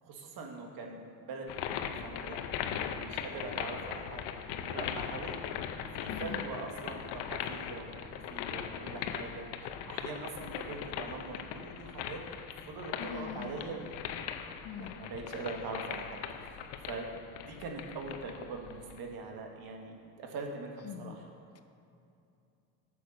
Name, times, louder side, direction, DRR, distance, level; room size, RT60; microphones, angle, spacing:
voice 1, 0.0-4.2 4.5-5.3 5.9-9.5 9.9-13.9 14.8-21.3, right 3 dB, 60° right, 2 dB, 1.6 m, -43 dB
sound 1, 1.5-19.0, left 8 dB, 70° left, 0.8 m, -39 dB
voice 2, 6.1-6.5 13.0-13.6 14.6-15.0 20.8-21.6, left 8 dB, 40° left, 10 dB, 0.5 m, -43 dB
9.1 x 6.7 x 5.4 m, 2.6 s
supercardioid pair, 100°, 41 cm